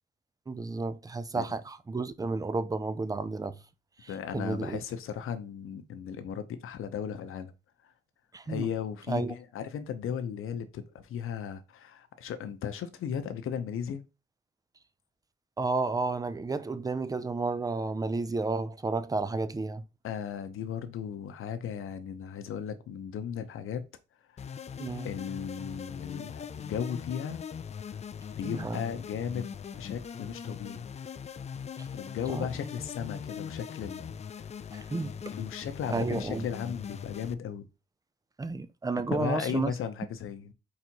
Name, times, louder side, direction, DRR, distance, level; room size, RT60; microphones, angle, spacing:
voice 1, 0.5-3.6 4.0-4.8 8.3-8.7 9.1-9.3 15.6-19.8 24.8-25.1 28.4-28.8 32.3-32.5 34.7-35.2 35.9-36.5 38.4-39.7, right 3 dB, 15° right, 0.5 m, -32 dB
voice 2, 4.1-7.5 7.8-7.9 8.5-14.0 20.0-23.8 24.3-24.4 25.0-27.4 27.9-28.0 28.4-30.8 31.9-34.5 35.3-37.7 38.9-40.5, left 8 dB, 85° left, 0.9 m, -36 dB
sound 1, 24.4-37.3, left 7 dB, 30° left, 0.4 m, -41 dB
4.9 x 4.3 x 4.6 m
cardioid pair, 140°, 21 cm